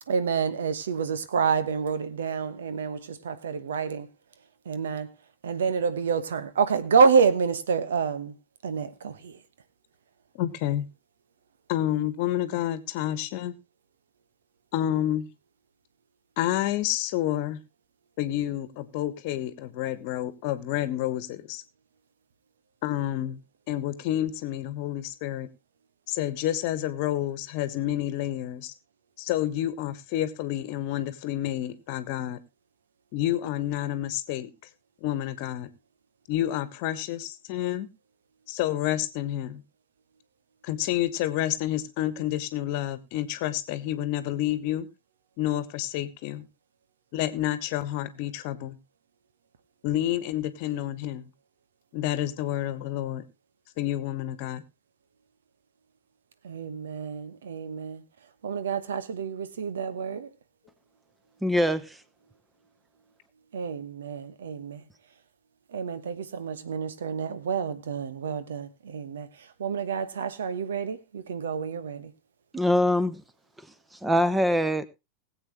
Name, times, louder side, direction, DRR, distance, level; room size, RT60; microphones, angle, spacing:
voice 1, 0.1-4.1 4.6-5.1 5.4-8.3 8.6-9.4 56.4-58.0 58.4-60.3 63.5-64.8 65.7-69.3 69.6-72.1, right 6 dB, 65° right, 1.2 m, -28 dB
voice 2, 10.3-10.9 11.7-13.5 14.7-15.3 16.4-17.6 18.2-21.6 22.8-23.4 23.7-25.5 26.1-28.7 29.2-32.4 33.1-34.5 35.0-35.7 36.3-37.9 38.5-39.6 40.6-44.9 45.4-46.4 47.1-48.8 49.8-51.3 51.9-53.2 53.8-54.6, left 13 dB, 45° left, 1.3 m, -29 dB
voice 3, 61.4-61.9 72.5-73.2 74.0-74.8, left 1 dB, 10° right, 1.1 m, -23 dB
20.5 x 8.1 x 3.1 m
figure-of-eight pair, 90°, 0 cm